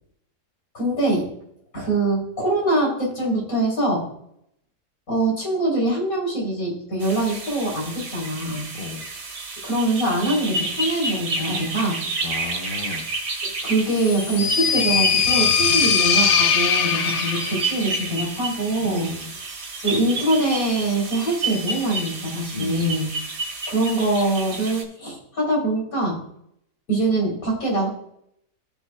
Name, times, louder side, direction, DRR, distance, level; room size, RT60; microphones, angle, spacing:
voice 1, 0.7-1.3 1.7-4.0 5.1-8.7 9.6-12.0 13.6-19.1 19.8-23.1 23.7-26.2 26.9-27.9, right 2 dB, 55° left, -2 dB, 4.0 m, -23 dB
Birdsong in the bush, 7.0-24.8, right 3 dB, 85° right, 2.3 m, -30 dB
voice 2, 8.7-9.1 12.2-13.1 15.7-15.8 18.8-19.3 22.5-23.0, left 4 dB, 40° left, 3 dB, 1.1 m, -33 dB
sound 1, 14.0-17.7, left 6 dB, 80° left, 1.3 m, -20 dB
14.0 x 6.7 x 2.2 m, 0.73 s
omnidirectional pair, 1.7 m